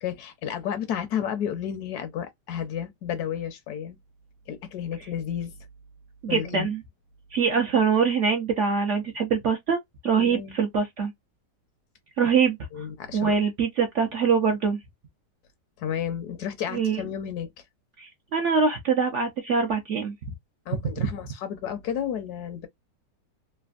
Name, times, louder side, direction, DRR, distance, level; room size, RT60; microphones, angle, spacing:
voice 1, 0.0-4.0 4.5-5.5 6.3-6.7 10.2-10.6 12.7-13.4 15.8-17.5 20.7-22.7, left 9 dB, 70° left, 1.0 m, -32 dB
voice 2, 6.2-6.8 7.3-9.8 10.0-11.1 12.2-12.9 13.1-14.8 16.7-17.0 18.0-20.1 21.0-21.1, right 5 dB, 65° right, 0.7 m, -24 dB
3.3 x 2.2 x 2.3 m
omnidirectional pair, 1.9 m